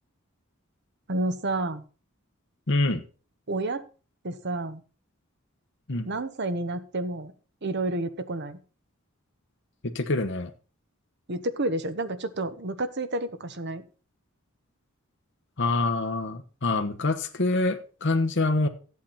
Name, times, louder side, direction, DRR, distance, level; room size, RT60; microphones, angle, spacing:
voice 1, 1.1-1.8 3.5-3.8 4.2-4.8 6.1-7.3 7.6-8.6 11.3-13.8, right 2 dB, 55° right, 11 dB, 1.2 m, -30 dB
voice 2, 2.7-3.0 5.9-6.1 9.9-10.5 15.6-18.7, left 2 dB, 60° left, 5 dB, 1.2 m, -25 dB
13.5 x 8.5 x 4.2 m, 0.37 s
head